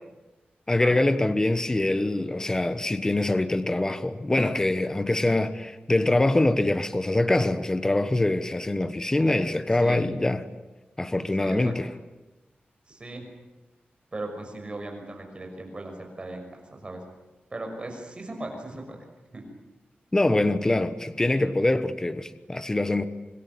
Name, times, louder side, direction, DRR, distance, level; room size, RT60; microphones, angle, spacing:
voice 1, 0.7-10.4 11.0-11.9 20.1-23.1, left 2 dB, 15° left, 1.2 m, -24 dB
voice 2, 11.4-11.7 12.9-13.3 14.1-17.0 17.5-19.0 19.3-19.4, right 2 dB, 30° right, 6.0 m, -38 dB
26.0 x 21.5 x 9.4 m
wide cardioid pair, 165°, 4 cm